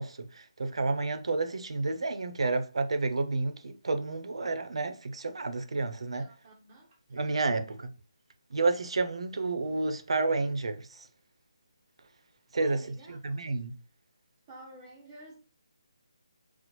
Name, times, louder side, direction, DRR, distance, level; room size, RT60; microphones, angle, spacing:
voice 1, 0.0-6.2 7.1-7.9 8.5-11.1 12.5-13.7, right 3 dB, 70° right, 0.6 m, -30 dB
voice 2, 6.1-7.8 12.5-13.4 14.5-15.4, right 2 dB, 20° right, 0.6 m, -52 dB
4.2 x 2.0 x 3.0 m
figure-of-eight pair, 160°, 3 cm